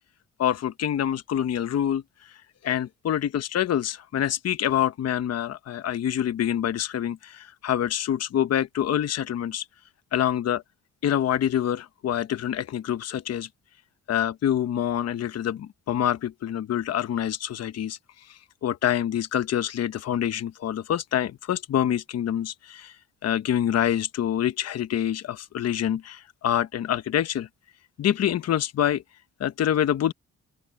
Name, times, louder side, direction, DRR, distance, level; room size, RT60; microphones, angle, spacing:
voice 1, 0.4-9.7 10.1-10.6 11.0-13.5 14.1-27.5 28.0-29.0 29.4-30.1, left 10 dB, 55° left, 1.0 m, -26 dB
open air
cardioid pair, 90°, 30 cm